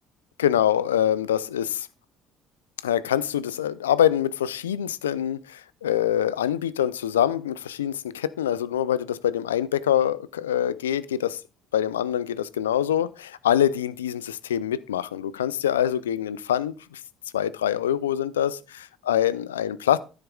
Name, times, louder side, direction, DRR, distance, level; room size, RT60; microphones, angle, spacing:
voice 1, 0.4-1.6 2.8-5.4 5.8-7.9 8.4-10.2 10.4-11.0 11.7-12.3 12.6-13.1 13.4-14.2 14.5-16.7 17.3-18.5 19.1-20.0, left 10 dB, 90° left, 0.4 m, -24 dB
13.5 x 7.1 x 2.3 m
hypercardioid pair, 60°, 0 cm